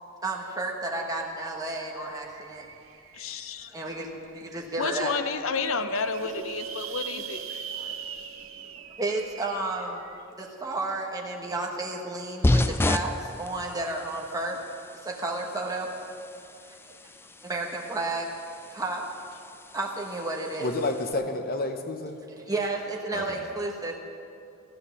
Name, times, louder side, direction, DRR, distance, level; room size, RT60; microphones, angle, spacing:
voice 1, 0.2-2.7 3.6-5.1 7.7-8.1 8.6-14.6 15.0-15.9 16.7-16.8 17.4-18.3 18.7-19.0 19.7-20.7 22.3-24.0, right 2 dB, 20° right, -1 dB, 1.3 m, -32 dB
sound 1, 1.1-1.2 1.5-3.6 4.2-4.3 4.7-4.8 4.9-5.0 5.6-10.2, right 8 dB, 80° right, 0.9 m, -41 dB
voice 2, 3.1-3.7 4.8-7.7, left 5 dB, 70° left, 10 dB, 0.7 m, -31 dB
Chink clink, 5.5-9.9, right 5 dB, 50° right, 1.8 m, -42 dB
sound 2, 12.4-21.1, left 1 dB, 10° left, 0.3 m, -32 dB
voice 3, 20.6-22.2 23.1-23.4, left 2 dB, 50° left, 6 dB, 1.0 m, -30 dB
14.0 x 9.6 x 7.0 m, 2.6 s
head